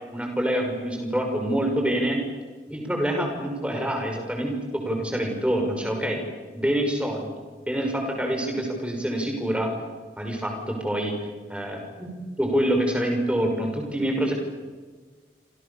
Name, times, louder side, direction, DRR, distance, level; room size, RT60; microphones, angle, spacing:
voice 1, 0.1-2.2 2.7-6.2 6.6-7.3 7.7-9.7 10.2-11.1 11.5-14.3, right 1 dB, 5° right, 2 dB, 5.8 m, -26 dB
29.0 x 27.5 x 7.1 m, 1.4 s
head